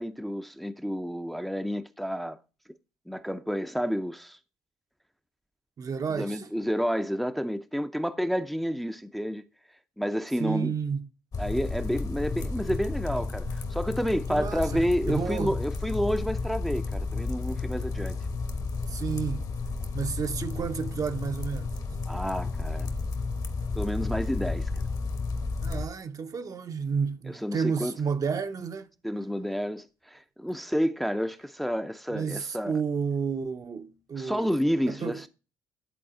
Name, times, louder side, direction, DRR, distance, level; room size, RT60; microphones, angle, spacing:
voice 1, 0.0-2.4 3.1-4.4 6.1-9.4 10.0-10.7 11.4-18.2 22.1-22.9 23.8-24.8 27.4-27.9 29.0-32.8 34.2-35.3, equal, ahead, 0.5 m, -30 dB
voice 2, 5.8-6.5 10.4-11.1 14.3-15.6 18.9-19.5 19.9-21.7 25.6-28.9 32.1-34.5 34.9-35.2, right 6 dB, 40° right, 0.7 m, -31 dB
sound 1, 11.3-25.9, left 3 dB, 45° left, 1.1 m, -32 dB
10.5 x 4.0 x 3.7 m
supercardioid pair, 65°, 9 cm